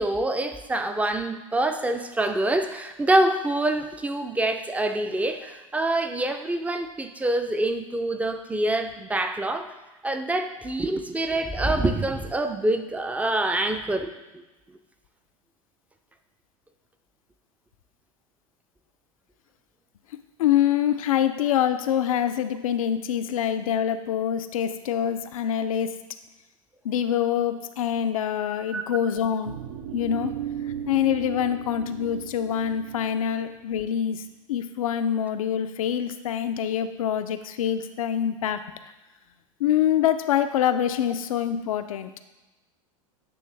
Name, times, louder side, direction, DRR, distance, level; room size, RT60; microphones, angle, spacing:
voice 1, 0.0-9.7 10.0-14.4 28.7-28.8, right 1 dB, 10° right, 7 dB, 0.5 m, -26 dB
voice 2, 20.4-26.0 26.8-29.6 29.9-30.3 30.9-38.6 39.6-42.1, left 9 dB, 75° left, 9 dB, 0.5 m, -25 dB
sound 1, 29.5-33.6, right 10 dB, 70° right, 0.5 m, -36 dB
9.3 x 3.1 x 3.3 m, 1.1 s
hypercardioid pair, 95°, 18 cm